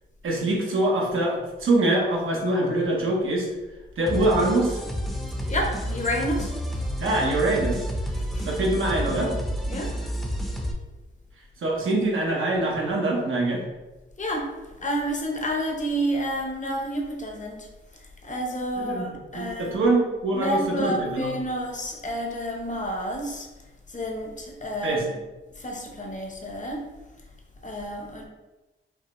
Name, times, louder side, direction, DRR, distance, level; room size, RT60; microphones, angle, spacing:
voice 1, 0.2-3.5 4.0-4.8 7.0-7.8 8.5-9.3 11.6-13.6 18.8-21.3 24.8-25.0, right 2 dB, 75° right, -2 dB, 1.1 m, -24 dB
sound 1, 4.1-10.7, equal, ahead, 0.7 m, -30 dB
voice 2, 5.5-6.8 8.1-8.5 9.7-10.1 14.2-14.5 14.8-17.7 18.2-19.9 20.3-23.5 23.9-25.2 25.6-26.9 27.6-28.3, equal, 35° left, 1 dB, 0.9 m, -30 dB
5.5 x 2.3 x 3.1 m, 1.1 s
cardioid pair, 80°, 21 cm